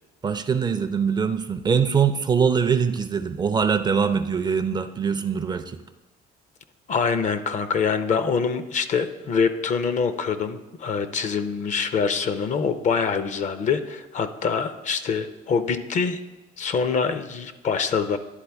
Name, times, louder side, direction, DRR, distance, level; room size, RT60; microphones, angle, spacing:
voice 1, 0.2-5.8, right 6 dB, 25° right, 10 dB, 0.4 m, -23 dB
voice 2, 6.9-16.2 16.6-18.2, left 5 dB, 45° left, 11 dB, 0.5 m, -25 dB
10.5 x 4.0 x 3.4 m, 1.1 s
cardioid pair, 110°, 17 cm